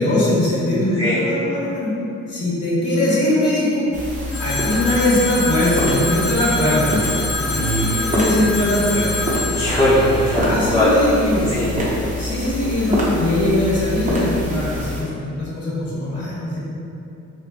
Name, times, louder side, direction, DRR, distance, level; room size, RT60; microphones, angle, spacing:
voice 1, 0.0-1.9 2.3-3.9 4.4-7.1 7.7-9.4 10.3-11.5 12.2-16.6, left 1 dB, 55° left, -8 dB, 1.2 m, -21 dB
sound 1, 3.9-15.0, left 1 dB, 25° right, 0.8 m, -25 dB
Telephone, 4.3-11.1, left 2 dB, 80° left, 0.6 m, -27 dB
voice 2, 7.4-8.0 9.5-10.4 10.7-10.9 11.5-11.7, equal, 20° left, -10 dB, 0.7 m, -19 dB
4.2 x 2.1 x 2.8 m, 2.7 s
cardioid pair, 90°, 30 cm